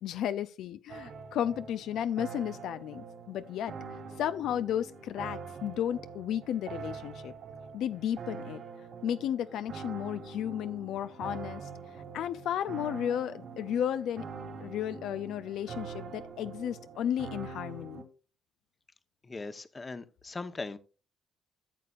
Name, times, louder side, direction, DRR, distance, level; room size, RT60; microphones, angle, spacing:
voice 1, 0.0-7.3 7.7-8.6 9.0-14.3 14.6-18.0, left 10 dB, 80° left, 0.5 m, -33 dB
sound 1, 0.9-18.0, right 5 dB, 70° right, 3.1 m, -44 dB
voice 2, 19.2-20.8, left 3 dB, 25° left, 0.9 m, -39 dB
14.0 x 6.8 x 2.4 m
cardioid pair, 90°, 0 cm